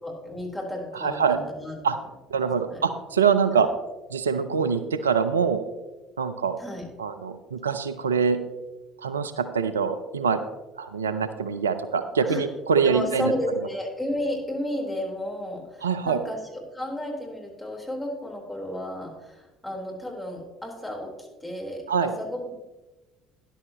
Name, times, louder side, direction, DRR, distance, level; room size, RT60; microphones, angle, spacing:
voice 1, 0.0-1.8 2.7-2.9 3.5-3.6 6.6-6.8 12.2-12.4 12.8-22.5, left 1 dB, 10° left, -1 dB, 3.9 m, -33 dB
voice 2, 0.9-1.4 1.8-2.0 2.3-3.7 4.1-5.6 6.2-6.6 7.0-8.4 9.0-10.4 10.8-13.3 15.8-16.2 21.9-22.1, right 6 dB, 90° right, 11 dB, 0.5 m, -24 dB
12.5 x 11.0 x 3.0 m, 1.1 s
hypercardioid pair, 60°, 0 cm